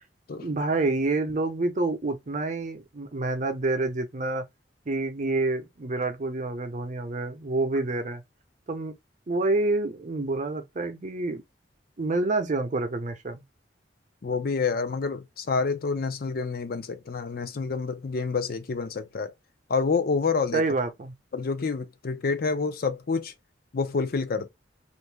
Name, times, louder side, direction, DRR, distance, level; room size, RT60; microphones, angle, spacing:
voice 1, 0.4-4.4 4.9-8.2 8.7-8.9 9.3-11.4 12.0-13.4 20.5-21.1, right 2 dB, 40° right, 0.6 m, -28 dB
voice 2, 14.2-19.3 19.7-20.6 21.3-23.3 23.7-24.5, left 4 dB, 55° left, 0.5 m, -28 dB
2.6 x 2.5 x 3.2 m
head